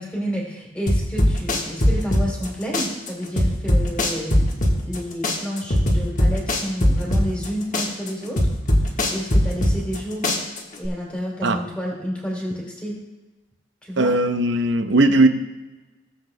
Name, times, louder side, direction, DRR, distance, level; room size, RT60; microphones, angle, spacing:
voice 1, 0.0-4.5 4.8-8.4 8.8-10.4 10.8-13.0 13.8-14.1 15.2-15.3, equal, 5° left, -4 dB, 3.0 m, -30 dB
sound 1, 0.9-2.5 2.7-5.0 5.2-7.5 7.7-10.0 10.2-10.9, left 1 dB, 45° left, 1.4 m, -19 dB
voice 2, 14.0-15.3, right 2 dB, 80° right, 8 dB, 0.8 m, -18 dB
17.0 x 7.9 x 2.2 m, 1.2 s
head